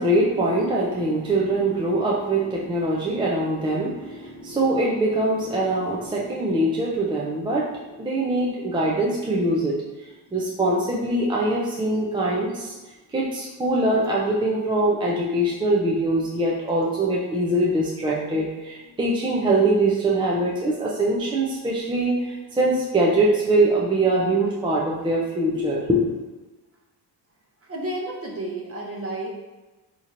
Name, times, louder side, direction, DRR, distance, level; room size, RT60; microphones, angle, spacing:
voice 1, 0.0-7.7 8.0-9.8 10.0-12.7 13.1-26.2, right 1 dB, 15° right, -4 dB, 0.4 m, -23 dB
voice 2, 27.7-29.3, right 1 dB, 35° right, -1 dB, 0.9 m, -31 dB
4.2 x 2.9 x 2.5 m, 1.2 s
cardioid pair, 120°, 40 cm